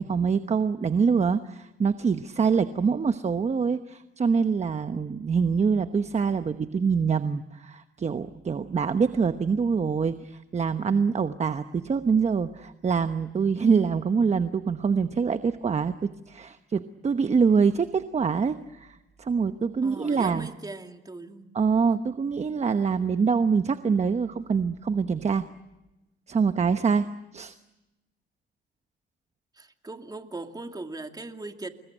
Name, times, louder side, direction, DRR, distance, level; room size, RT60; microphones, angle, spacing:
voice 1, 0.0-20.5 21.5-25.4 26.3-27.1 27.3-27.5, right 5 dB, 35° right, 9 dB, 1.0 m, -25 dB
voice 2, 19.8-21.5 29.5-31.7, right 2 dB, 20° right, 5 dB, 2.4 m, -39 dB
29.0 x 21.0 x 9.0 m, 1.0 s
cardioid pair, 90°, 20 cm